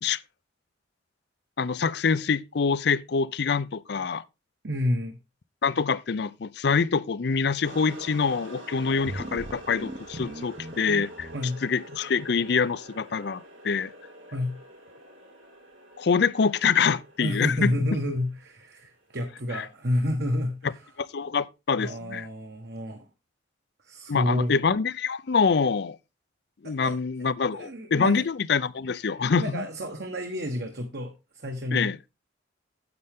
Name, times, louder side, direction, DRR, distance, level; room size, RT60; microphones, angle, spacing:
voice 1, 1.6-4.2 5.6-11.3 11.6-13.9 16.0-17.7 20.6-20.7 21.0-22.3 24.1-26.0 26.6-29.6 31.7-32.0, left 5 dB, 55° left, 0.5 m, -25 dB
voice 2, 4.6-5.2 11.3-11.6 14.3-14.6 17.2-20.9 21.8-23.1 23.8-24.5 26.6-28.2 29.4-31.9, left 1 dB, 55° right, 1.3 m, -30 dB
sound 1, 7.6-19.1, right 1 dB, 85° right, 5.0 m, -47 dB
sound 2, 8.9-11.4, right 1 dB, 35° right, 0.7 m, -39 dB
9.7 x 7.8 x 3.6 m
head